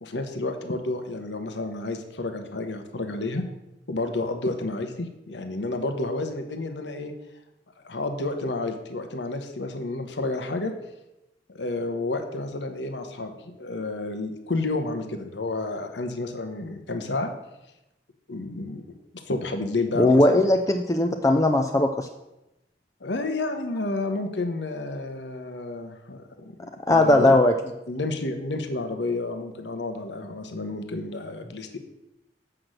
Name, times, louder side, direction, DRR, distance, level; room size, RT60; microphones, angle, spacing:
voice 1, 0.0-3.4 3.9-7.1 7.8-10.7 11.5-17.3 18.3-18.8 19.3-20.4 23.0-27.4 27.9-31.8, left 2 dB, 80° left, 6 dB, 1.1 m, -30 dB
voice 2, 20.0-22.1 26.9-27.5, left 1 dB, 20° left, 5 dB, 0.5 m, -19 dB
7.8 x 6.0 x 6.5 m, 0.92 s
head